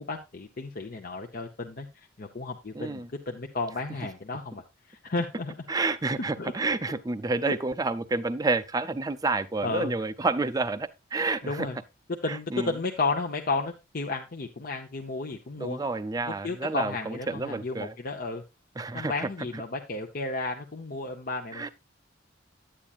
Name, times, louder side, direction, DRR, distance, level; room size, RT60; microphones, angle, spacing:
voice 1, 0.0-5.9 6.4-6.5 7.4-7.5 9.6-9.9 11.4-11.8 12.2-15.8 16.3-18.4 18.9-21.7, left 3 dB, 50° left, 0.8 m, -33 dB
voice 2, 2.7-3.1 5.7-11.7 12.3-12.7 15.6-17.9 18.8-19.3 21.5-21.7, right 3 dB, 20° right, 0.5 m, -29 dB
9.9 x 8.8 x 2.4 m
head